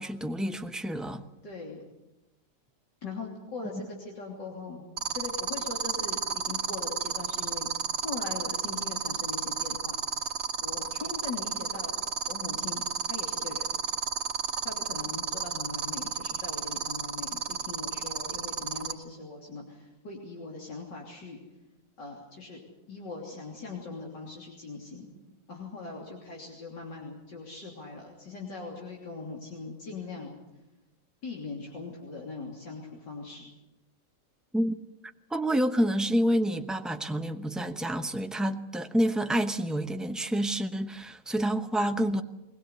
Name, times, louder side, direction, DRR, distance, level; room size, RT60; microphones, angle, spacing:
voice 1, 0.0-1.2 3.7-3.9 34.5-34.8 35.3-42.2, equal, ahead, 0.5 m, -28 dB
voice 2, 1.4-1.8 3.0-4.8 5.1-7.7 8.0-10.0 10.6-11.9 12.3-12.8 13.1-13.7 14.6-21.4 22.0-22.6 22.9-25.1 25.5-30.3 31.2-33.4, left 4 dB, 70° left, 3.8 m, -40 dB
sound 1, 5.0-18.9, right 6 dB, 40° right, 2.5 m, -31 dB
22.0 x 20.0 x 8.2 m
omnidirectional pair, 1.9 m